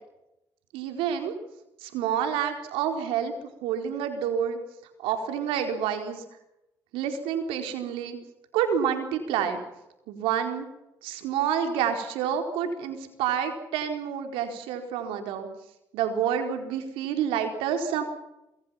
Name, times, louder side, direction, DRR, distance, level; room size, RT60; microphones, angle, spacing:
voice 1, 0.7-1.3 1.8-3.3 3.6-4.6 5.0-6.2 6.9-8.2 8.5-9.6 10.1-10.7 11.0-15.5 15.9-18.0, right 8 dB, 85° right, 6 dB, 4.4 m, -28 dB
27.0 x 23.5 x 5.8 m, 0.89 s
supercardioid pair, 55°, 9 cm